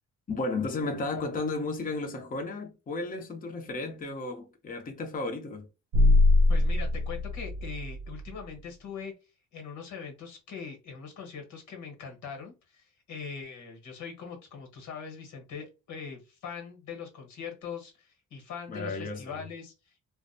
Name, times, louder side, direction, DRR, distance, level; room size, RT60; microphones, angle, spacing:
voice 1, 0.3-5.7 18.7-19.5, left 3 dB, 30° left, 0.6 m, -33 dB
sound 1, 5.9-8.4, left 2 dB, 80° right, 0.5 m, -23 dB
voice 2, 6.5-9.1 9.5-19.9, left 6 dB, 75° left, 1.1 m, -41 dB
2.5 x 2.1 x 2.5 m
cardioid pair, 90°, 30 cm